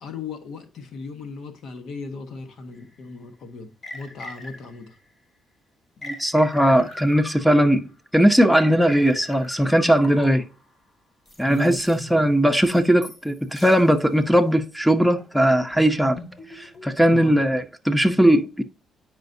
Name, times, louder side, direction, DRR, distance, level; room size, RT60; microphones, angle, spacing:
voice 1, 0.0-5.0 11.5-12.1 17.1-17.4, left 3 dB, 70° left, 1.3 m, -36 dB
sound 1, 2.8-2.9 3.8-4.9 6.0-7.8 8.6-10.6 11.3-12.0 12.6-13.3 13.6-13.8 14.3-14.5 15.2-17.1, left 1 dB, 35° left, 2.4 m, -40 dB
voice 2, 6.0-10.5 11.4-16.2 16.5-18.6, equal, ahead, 0.8 m, -19 dB
9.1 x 5.0 x 2.7 m
cardioid pair, 95°, 0 cm